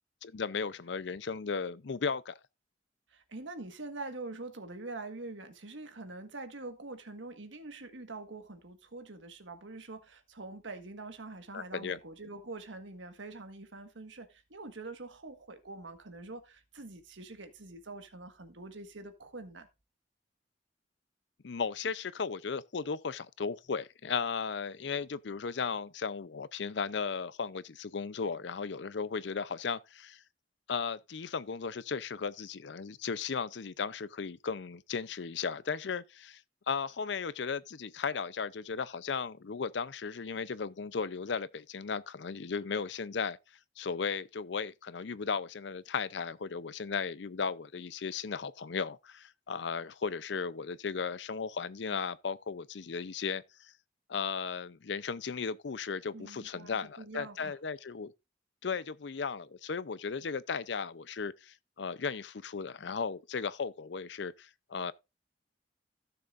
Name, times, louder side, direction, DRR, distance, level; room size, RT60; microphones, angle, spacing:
voice 1, 0.2-2.4 11.5-12.0 21.4-30.2 30.7-36.4 36.7-43.4 43.8-53.7 54.1-58.1 58.6-64.9, left 5 dB, 70° left, 0.5 m, -36 dB
voice 2, 3.1-19.7 56.1-57.6, right 3 dB, 90° right, 1.5 m, -45 dB
15.5 x 6.7 x 2.5 m
head